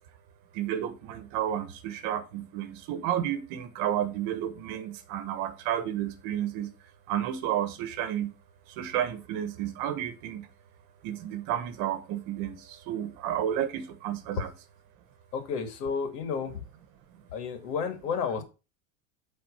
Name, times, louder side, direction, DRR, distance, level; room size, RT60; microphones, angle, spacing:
voice 1, 0.5-6.7 7.1-8.3 8.7-10.5 11.0-14.5 17.1-17.2, right 10 dB, 45° right, 1.3 m, -31 dB
voice 2, 15.3-16.6 17.3-18.4, left 6 dB, 80° left, 2.5 m, -31 dB
8.6 x 4.2 x 5.5 m
supercardioid pair, 155°, 46 cm